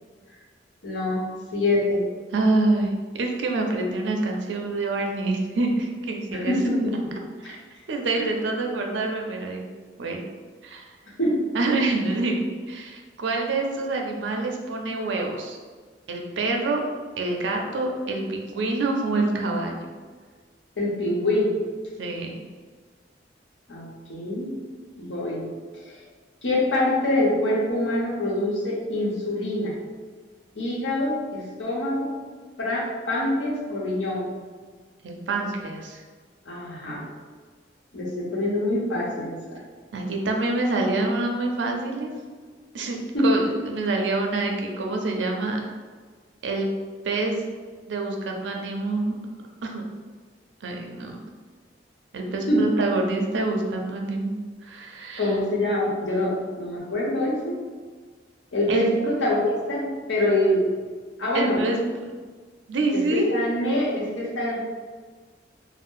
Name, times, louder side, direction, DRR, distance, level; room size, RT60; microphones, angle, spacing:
voice 1, 0.8-1.2 1.5-2.0 6.3-7.1 7.4-7.6 8.1-8.3 11.2-11.4 20.8-21.6 23.7-24.5 25.0-25.5 25.9-26.0 26.4-29.7 30.5-32.1 32.6-34.3 36.5-37.0 37.9-39.6 43.1-43.3 52.5-52.6 55.2-57.5 58.5-60.6 61.2-61.6 62.9-64.6, left 1 dB, 90° left, -4 dB, 0.8 m, -25 dB
voice 2, 2.3-6.5 7.4-7.6 7.9-9.7 10.0-10.2 10.6-10.9 11.5-15.6 16.1-16.8 17.2-19.8 22.0-22.4 35.0-36.0 39.9-42.1 42.7-43.0 43.2-45.6 46.4-46.7 47.0-47.4 47.9-49.2 49.6-49.8 50.6-51.2 52.1-54.3 54.6-55.3 58.7-58.9 61.3-62.1 62.7-63.3, right 2 dB, 80° right, 1 dB, 0.5 m, -26 dB
2.5 x 2.0 x 3.5 m, 1.5 s
head